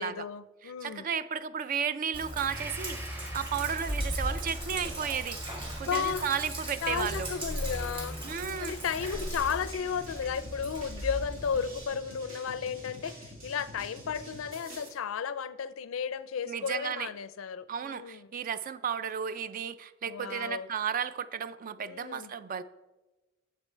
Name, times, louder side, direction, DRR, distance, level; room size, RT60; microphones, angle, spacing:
voice 1, 0.0-1.1 5.9-6.3 6.8-8.2 8.6-18.3 20.1-20.7 21.9-22.3, left 7 dB, 85° left, 15 dB, 0.4 m, -34 dB
voice 2, 0.6-3.0 3.3-5.4 5.8-7.3 8.2-8.7 16.5-17.1 17.7-22.6, right 7 dB, 45° right, 15 dB, 0.3 m, -33 dB
Sink (filling or washing), 2.1-11.8, equal, 25° right, 1.9 m, -37 dB
Gong, 2.5-10.1 10.5-10.6, right 1 dB, 10° right, 0.8 m, -49 dB
sound 1, 9.0-14.9, equal, 85° right, 2.5 m, -47 dB
9.0 x 6.9 x 4.4 m, 1.1 s
head